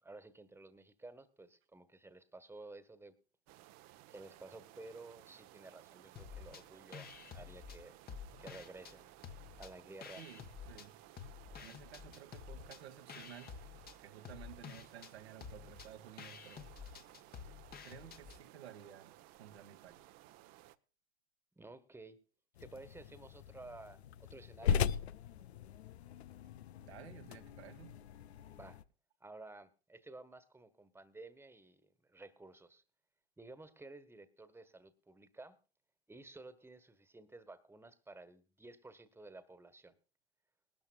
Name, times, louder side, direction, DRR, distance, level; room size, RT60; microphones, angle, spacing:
voice 1, 0.0-3.1 4.1-8.0 8.4-9.1 9.6-10.2 21.6-22.2 22.6-24.9 28.5-28.8 29.2-32.8 33.4-35.6 36.1-40.0, right 2 dB, 5° right, 1.5 m, -53 dB
sound 1, 3.5-20.8, right 15 dB, 55° right, 1.0 m, -59 dB
sound 2, 6.2-6.6 6.9-9.0 9.2-10.9 11.2-18.4, left 7 dB, 30° left, 1.3 m, -51 dB
voice 2, 10.2-11.0 11.6-13.6 14.0-16.7 17.8-20.1 26.8-28.0, right 10 dB, 85° right, 1.8 m, -54 dB
sound 3, 22.6-28.8, left 7 dB, 85° left, 0.7 m, -39 dB
19.5 x 13.0 x 2.3 m
hypercardioid pair, 85°, 31 cm